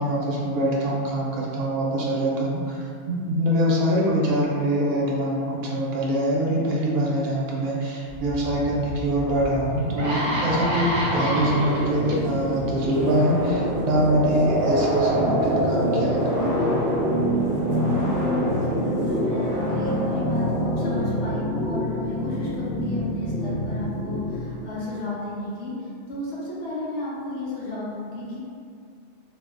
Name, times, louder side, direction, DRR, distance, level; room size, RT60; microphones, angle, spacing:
voice 1, 0.0-16.5, equal, 65° right, -4 dB, 0.8 m, -24 dB
sound 1, 8.2-21.5, right 1 dB, 25° right, 0.5 m, -27 dB
sound 2, 9.2-9.3 9.8-12.1 12.8-13.0, right 1 dB, 90° right, 0.9 m, -27 dB
sound 3, 12.3-24.5, left 1 dB, 45° left, 1.5 m, -28 dB
voice 2, 18.6-28.4, left 2 dB, 85° left, -7 dB, 1.0 m, -33 dB
3.2 x 2.3 x 2.4 m, 2.3 s
omnidirectional pair, 1.2 m